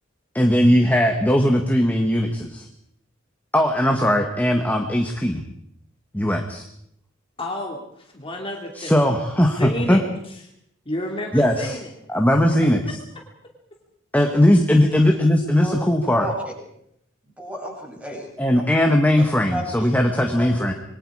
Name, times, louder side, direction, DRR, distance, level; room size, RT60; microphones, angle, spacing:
voice 1, 0.3-2.7 3.5-5.4 6.1-6.7 8.8-10.0 11.3-11.8 12.1-13.0 14.1-16.3 18.4-20.7, left 1 dB, 10° left, 3 dB, 1.7 m, -19 dB
voice 2, 7.4-8.9 9.4-10.3 10.8-12.0 12.6-12.7, left 1 dB, 25° left, 1 dB, 2.7 m, -31 dB
voice 3, 16.2-16.5 17.4-18.7 19.5-20.5, equal, 5° right, -2 dB, 7.9 m, -33 dB
26.5 x 23.0 x 5.0 m, 0.74 s
head